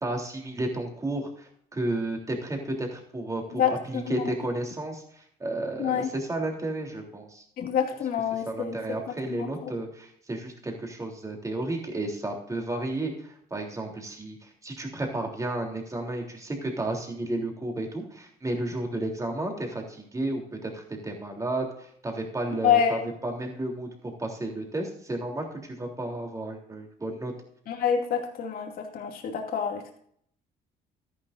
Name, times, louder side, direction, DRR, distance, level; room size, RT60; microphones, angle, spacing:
voice 1, 0.0-5.0 5.4-7.4 8.4-21.7 22.0-27.3, right 2 dB, 20° right, 1 dB, 3.2 m, -32 dB
voice 2, 3.5-4.3 5.8-6.1 7.6-9.0 9.3-9.7 22.6-23.1 27.7-30.0, left 8 dB, 60° left, 2 dB, 2.4 m, -27 dB
13.0 x 11.0 x 2.6 m, 0.66 s
cardioid pair, 110°, 17 cm